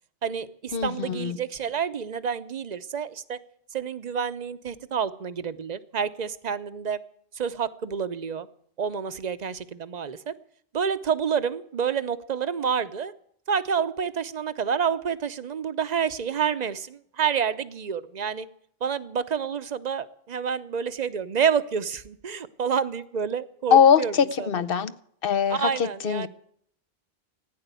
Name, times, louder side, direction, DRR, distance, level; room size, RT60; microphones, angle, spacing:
voice 1, 0.2-3.4 3.7-7.0 7.3-8.5 8.8-10.3 10.7-13.1 13.5-18.5 18.8-24.5 25.5-26.3, right 7 dB, 45° right, 13 dB, 0.8 m, -28 dB
voice 2, 0.7-1.4 23.7-24.9 25.2-26.3, left 7 dB, 65° left, 15 dB, 0.9 m, -21 dB
15.0 x 10.0 x 8.2 m, 0.67 s
omnidirectional pair, 1.1 m